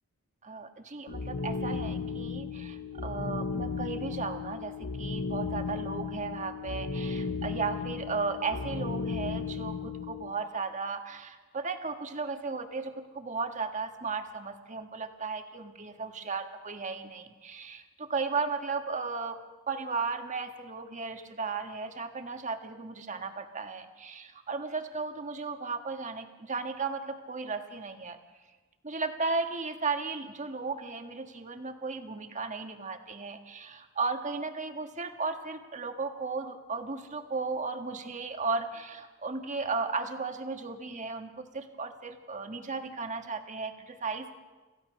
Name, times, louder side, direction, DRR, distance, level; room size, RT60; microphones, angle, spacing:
voice 1, 0.4-19.4 19.7-28.2 28.8-44.3, right 4 dB, 35° right, 6 dB, 1.5 m, -35 dB
sound 1, 1.1-10.3, left 4 dB, 90° left, 0.9 m, -35 dB
26.5 x 15.5 x 6.4 m, 1.3 s
head